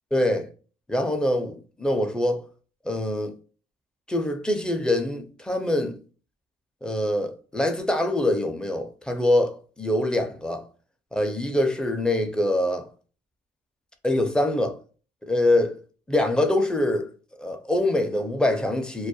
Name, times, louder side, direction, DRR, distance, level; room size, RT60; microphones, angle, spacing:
voice 1, 0.1-0.5 0.9-2.4 2.8-3.3 4.1-6.0 6.8-10.6 11.1-12.9 14.0-14.7 15.3-15.8 16.1-19.1, left 1 dB, 5° left, 0.4 m, -24 dB
2.3 x 2.1 x 2.6 m
cardioid pair, 110°, 17 cm